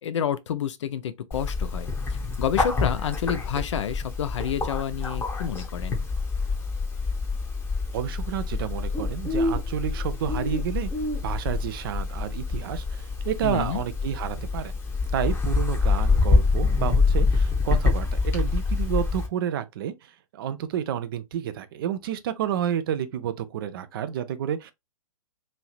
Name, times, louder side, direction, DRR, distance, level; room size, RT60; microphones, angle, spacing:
voice 1, 0.0-6.0 13.4-13.9, left 9 dB, 55° left, 0.4 m, -29 dB
Bird, 1.3-19.3, left 4 dB, 15° left, 0.8 m, -26 dB
voice 2, 7.9-10.9 11.2-14.7 15.1-24.7, right 10 dB, 40° right, 0.4 m, -30 dB
3.1 x 2.7 x 2.4 m
figure-of-eight pair, 120°, 18 cm